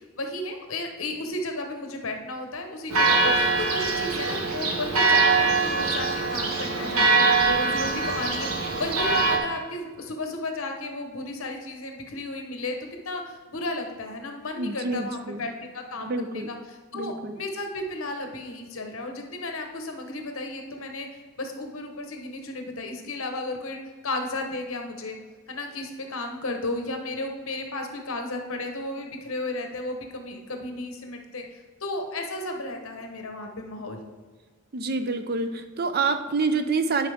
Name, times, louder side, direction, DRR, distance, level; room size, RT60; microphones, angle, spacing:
voice 1, 0.0-12.8 13.0-16.6 16.9-21.1 21.4-25.2 25.5-31.4 31.8-34.0, left 2 dB, 65° left, 4 dB, 1.0 m, -34 dB
Church bell, 2.9-9.4, right 3 dB, 75° right, 1.1 m, -23 dB
voice 2, 14.6-15.5 16.0-16.5 16.9-17.4 34.7-37.1, right 4 dB, 45° right, 9 dB, 0.5 m, -27 dB
11.5 x 5.1 x 3.5 m, 1.5 s
head